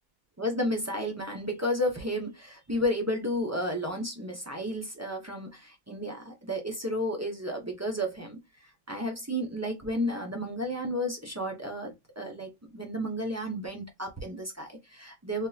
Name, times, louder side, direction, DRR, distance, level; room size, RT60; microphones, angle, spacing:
voice 1, 0.4-15.5, equal, 20° right, 0.5 m, -32 dB
3.6 x 2.7 x 2.3 m
omnidirectional pair, 1.5 m